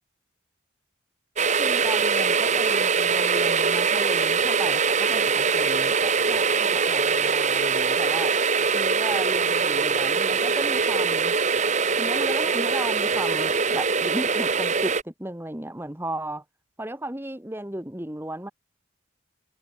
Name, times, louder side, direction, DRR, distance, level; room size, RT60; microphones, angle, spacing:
sound 1, 1.4-15.0, right 5 dB, 35° right, 1.2 m, -23 dB
voice 1, 1.6-8.4 8.7-11.3 12.0-16.4 16.8-18.5, right 1 dB, 10° right, 1.4 m, -35 dB
head